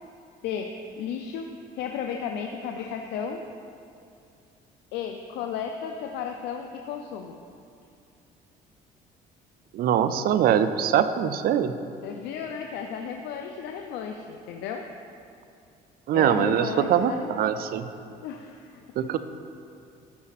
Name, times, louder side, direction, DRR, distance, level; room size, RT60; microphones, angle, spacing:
voice 1, 0.4-1.5 1.7-3.4 4.9-7.4 12.0-14.9 16.1-17.3 18.2-18.8, left 7 dB, 90° left, 4 dB, 0.5 m, -34 dB
voice 2, 9.7-11.8 16.1-17.9 19.0-19.2, right 9 dB, 60° right, 11 dB, 0.5 m, -23 dB
14.0 x 5.2 x 4.1 m, 2.5 s
cardioid pair, 110°, 17 cm